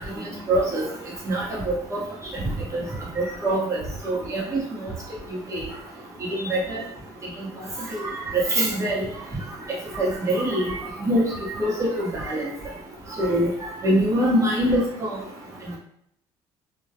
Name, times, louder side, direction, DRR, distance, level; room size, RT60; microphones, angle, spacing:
voice 1, 0.2-0.9 1.2-2.0 2.3-2.4 2.7-2.8 3.2-4.6 5.5-5.7 6.4-6.8 7.9-8.0 8.5-9.1 10.0-10.8 11.0-11.2 11.6-12.4 13.2-13.5 13.8-15.1, right 1 dB, 30° right, -5 dB, 0.9 m, -24 dB
2.2 x 2.1 x 2.7 m, 0.71 s
cardioid pair, 110°, 11 cm